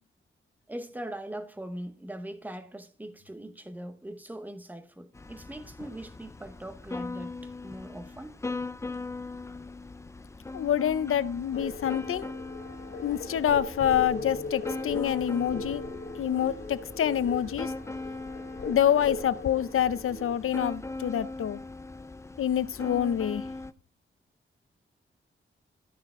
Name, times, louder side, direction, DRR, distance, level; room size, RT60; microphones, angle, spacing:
voice 1, 0.7-8.4, right 1 dB, 10° right, 0.9 m, -41 dB
sound 1, 5.1-23.7, left 3 dB, 15° left, 0.4 m, -40 dB
voice 2, 10.5-12.3 13.0-15.8 16.2-17.7 18.7-21.6 22.4-23.4, left 10 dB, 85° left, 0.6 m, -27 dB
sound 2, 11.5-20.4, left 2 dB, 55° left, 2.8 m, -39 dB
13.5 x 6.5 x 3.6 m
wide cardioid pair, 165°, 21 cm